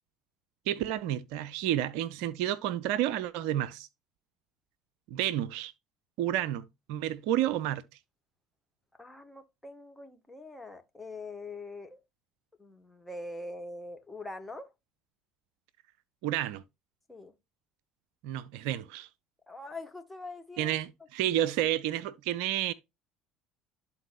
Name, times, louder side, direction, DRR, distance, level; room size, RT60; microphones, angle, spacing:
voice 1, 0.7-3.9 5.1-5.7 6.2-7.8 16.2-16.6 18.2-19.1 20.6-22.7, right 12 dB, 65° right, 0.4 m, -30 dB
voice 2, 9.0-12.0 12.6-14.7 17.1-17.3 19.5-20.8, left 2 dB, 10° left, 1.2 m, -43 dB
12.5 x 4.2 x 2.4 m
figure-of-eight pair, 60°, 0 cm